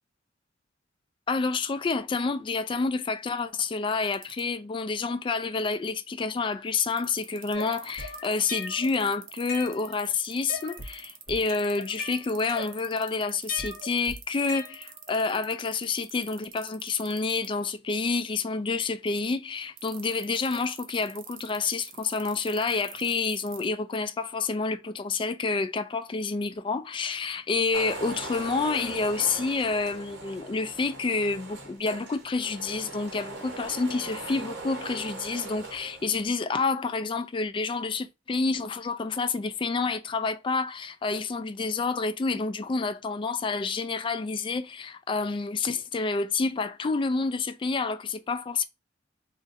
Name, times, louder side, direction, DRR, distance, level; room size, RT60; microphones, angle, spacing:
voice 1, 1.3-48.6, left 4 dB, 25° left, 0.3 m, -28 dB
sound 1, 4.1-4.4 6.8-17.5 19.8-23.7, right 10 dB, 85° right, 0.7 m, -44 dB
sound 2, 7.5-8.9 9.3-10.1 10.5-11.0 11.3-13.1 13.5-15.1, left 2 dB, 50° left, 0.9 m, -39 dB
sound 3, 27.7-36.3, right 2 dB, 60° right, 1.0 m, -40 dB
2.6 x 2.5 x 3.8 m
head